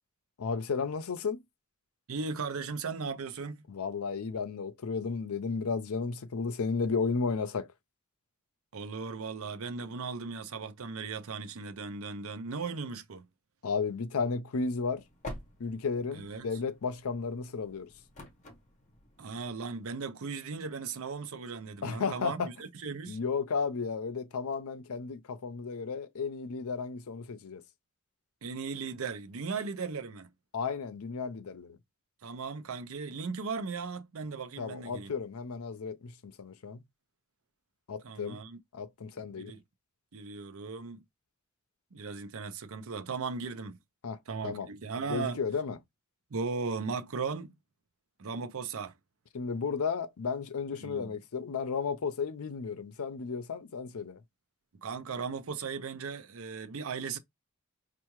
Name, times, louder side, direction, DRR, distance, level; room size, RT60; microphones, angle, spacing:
voice 1, 0.4-1.4 3.7-7.7 13.6-15.0 15.6-17.9 21.8-22.5 23.1-27.6 30.5-31.8 34.6-36.8 37.9-38.4 38.7-39.5 44.0-44.2 44.4-44.7 45.1-45.8 49.3-54.2, left 5 dB, 85° left, 0.5 m, -33 dB
voice 2, 2.1-3.7 8.7-13.3 16.1-16.6 19.2-23.2 28.4-30.3 32.2-35.1 38.0-38.6 39.2-39.6 40.1-41.0 41.9-43.8 44.3-45.4 46.3-47.6 48.2-49.0 50.7-51.1 54.8-57.2, right 4 dB, 75° right, 0.6 m, -37 dB
sound 1, 14.6-19.6, left 1 dB, 35° left, 0.9 m, -49 dB
4.6 x 2.5 x 2.9 m
head